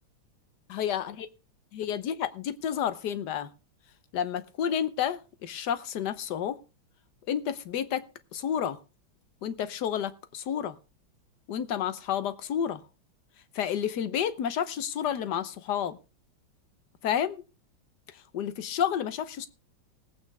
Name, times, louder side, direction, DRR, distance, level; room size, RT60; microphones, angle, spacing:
voice 1, 0.7-1.1 1.7-3.5 4.1-6.6 7.3-8.0 8.3-8.8 9.4-10.8 11.5-12.8 13.5-16.0 17.0-17.4 18.3-19.5, left 9 dB, 65° left, 13 dB, 1.4 m, -30 dB
18.5 x 8.6 x 3.5 m, 0.32 s
omnidirectional pair, 2.2 m